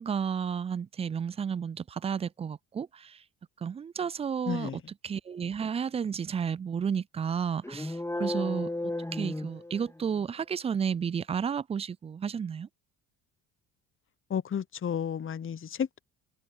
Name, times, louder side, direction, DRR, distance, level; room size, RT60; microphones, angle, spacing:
voice 1, 0.0-3.1 3.6-4.7 5.0-8.7 9.1-12.7, right 7 dB, 15° right, 0.3 m, -32 dB
voice 2, 4.5-4.8 14.3-16.0, left 8 dB, 25° left, 0.9 m, -32 dB
sound 1, 7.6-10.2, left 1 dB, 5° left, 2.3 m, -34 dB
hypercardioid pair, 55°, 47 cm